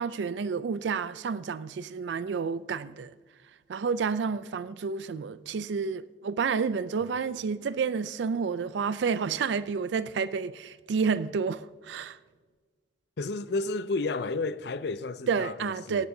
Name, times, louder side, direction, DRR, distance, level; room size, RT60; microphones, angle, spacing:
voice 1, 0.0-3.1 3.7-12.2 15.3-16.1, right 5 dB, 75° right, 0.4 m, -30 dB
voice 2, 13.2-16.1, left 3 dB, 65° left, 0.5 m, -32 dB
17.5 x 10.5 x 2.7 m
head